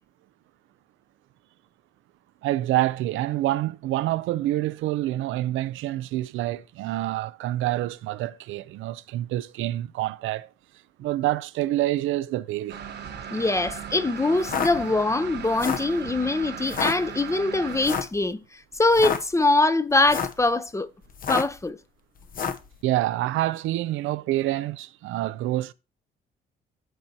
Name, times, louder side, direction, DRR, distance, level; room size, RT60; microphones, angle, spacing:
voice 1, 2.4-10.5 11.0-12.8 22.8-25.7, right 15 dB, 85° right, 0.4 m, -27 dB
sound 1, 12.7-18.0, right 8 dB, 60° right, 1.0 m, -37 dB
voice 2, 13.3-18.4 18.8-20.9 21.3-21.8, left 2 dB, 15° left, 0.6 m, -23 dB
sound 2, 14.3-14.7 15.5-15.9 16.6-16.9 17.8-18.2 18.8-19.2 20.0-20.4 21.1-21.6 22.3-22.7, left 6 dB, 45° left, 0.8 m, -28 dB
13.5 x 4.5 x 2.8 m
cardioid pair, 90°, 20 cm